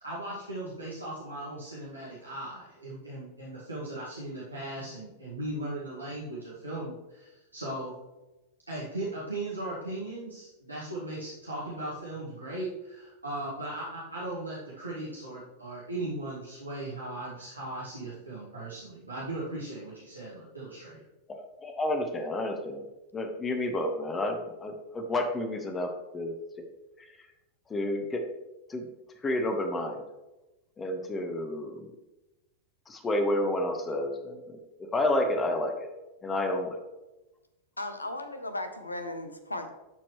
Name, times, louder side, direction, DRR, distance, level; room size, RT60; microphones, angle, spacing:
voice 1, 0.0-7.9 8.7-21.0, right 1 dB, 85° right, -7 dB, 1.7 m, -38 dB
voice 2, 21.3-22.8 23.1-26.3 27.0-27.1 27.7-28.2 28.7-28.9 29.2-30.0 30.8-31.9 32.9-34.6 34.9-35.9 36.2-36.8, left 1 dB, 15° left, 5 dB, 1.1 m, -30 dB
voice 3, 37.8-39.8, left 2 dB, 80° left, 8 dB, 0.8 m, -36 dB
12.0 x 4.5 x 3.1 m, 1.0 s
figure-of-eight pair, 90°, 0 cm